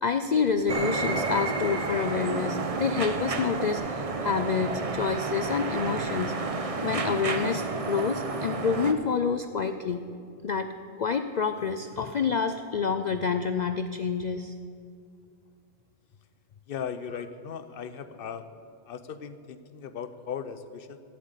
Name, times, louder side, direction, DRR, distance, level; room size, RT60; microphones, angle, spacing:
voice 1, 0.0-6.4 6.8-10.1 10.4-14.5, left 5 dB, 75° left, 9 dB, 0.4 m, -28 dB
sound 1, 0.7-8.9, right 3 dB, 35° right, 0.7 m, -30 dB
voice 2, 16.7-18.5 18.9-21.0, left 7 dB, 50° left, 11 dB, 0.8 m, -37 dB
15.0 x 7.7 x 8.1 m, 2.3 s
omnidirectional pair, 1.3 m